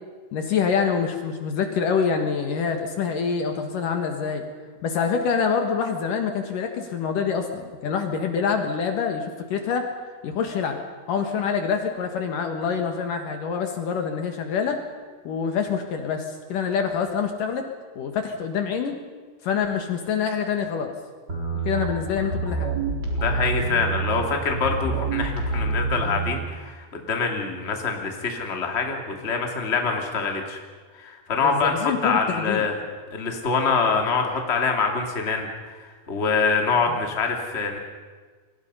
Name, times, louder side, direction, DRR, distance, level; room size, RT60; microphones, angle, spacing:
voice 1, 0.3-4.4 4.8-9.9 10.2-10.8 11.1-14.8 15.2-17.7 18.0-18.9 19.4-20.9 21.6-22.8 31.4-32.6 36.9-37.0, left 6 dB, 60° left, 4 dB, 2.9 m, -26 dB
sound 1, 21.3-26.3, right 3 dB, 25° right, 4.3 m, -27 dB
voice 2, 23.2-30.6 30.9-32.8 33.1-37.8, left 4 dB, 20° left, 2 dB, 2.2 m, -25 dB
29.0 x 23.0 x 5.6 m, 1.5 s
omnidirectional pair, 4.6 m